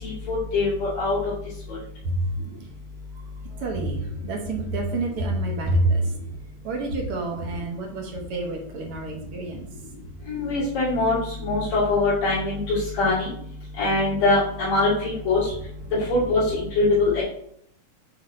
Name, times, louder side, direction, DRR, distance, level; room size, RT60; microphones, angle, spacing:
voice 1, 0.0-1.2 10.3-11.2 11.4-13.3 13.8-15.5 16.1-17.2, left 2 dB, 40° left, -12 dB, 3.6 m, -22 dB
voice 2, 3.5-6.1 6.6-9.7, right 2 dB, 65° right, 2 dB, 1.5 m, -27 dB
8.8 x 3.3 x 4.2 m, 0.67 s
omnidirectional pair, 3.5 m